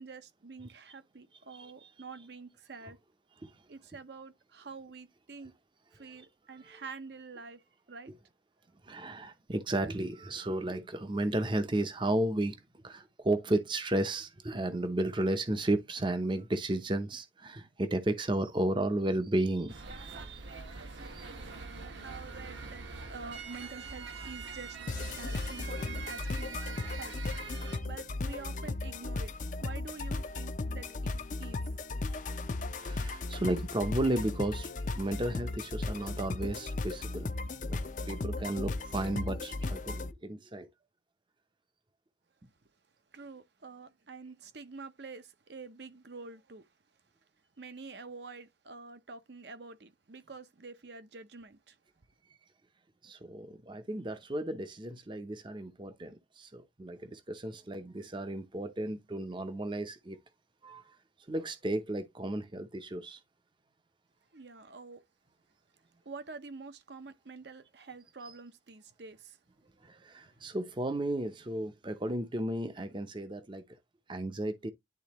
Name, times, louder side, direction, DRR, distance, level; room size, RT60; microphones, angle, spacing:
voice 1, 0.0-3.0 3.7-5.5 5.9-7.6 7.9-8.1 21.8-24.8 25.2-27.2 27.9-29.3 29.6-31.6 33.3-33.4 43.1-46.7 47.6-51.8 64.3-65.0 66.0-69.4, right 4 dB, 60° right, 0.8 m, -47 dB
voice 2, 1.5-1.9 3.4-3.6 6.0-6.8 8.8-20.4 21.1-21.3 27.6-27.9 32.8-37.3 37.6-37.8 38.1-40.7 53.0-60.2 60.6-61.0 61.3-63.2 68.2-68.3 69.8-73.6 74.1-74.7, right 1 dB, 25° right, 0.6 m, -34 dB
sound 1, 19.7-27.8, right 4 dB, 75° right, 1.6 m, -44 dB
sound 2, 24.9-40.1, left 2 dB, 40° left, 0.5 m, -36 dB
10.5 x 3.7 x 3.0 m
head